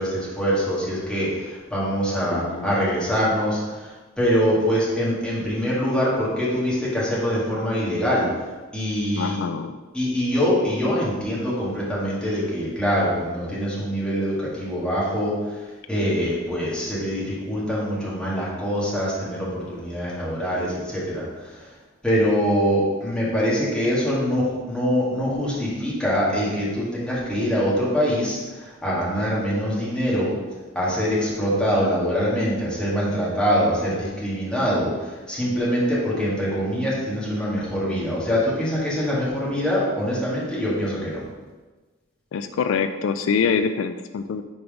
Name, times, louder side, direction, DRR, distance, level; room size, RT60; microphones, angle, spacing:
voice 1, 0.0-8.5 8.7-9.4 9.9-21.7 22.0-30.3 30.7-41.2, equal, 5° left, -8 dB, 2.0 m, -24 dB
voice 2, 2.3-2.8 9.1-9.8 42.3-44.4, left 6 dB, 75° left, 9 dB, 0.3 m, -25 dB
5.4 x 4.6 x 5.1 m, 1.3 s
head